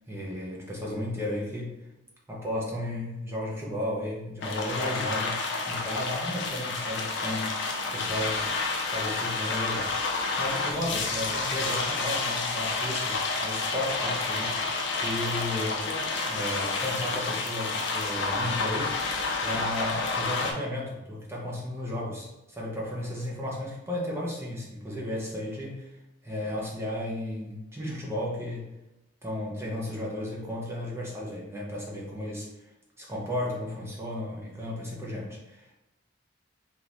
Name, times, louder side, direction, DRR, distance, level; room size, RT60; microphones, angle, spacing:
voice 1, 0.1-1.8 2.3-5.4 5.7-7.5 7.9-8.4 8.8-15.8 16.2-19.0 19.4-25.9 26.2-28.7 29.2-32.5 33.0-35.7, left 1 dB, 15° right, -4 dB, 0.7 m, -34 dB
sound 1, 4.4-20.5, left 3 dB, 60° left, 0.5 m, -30 dB
3.8 x 2.9 x 2.5 m, 0.93 s
head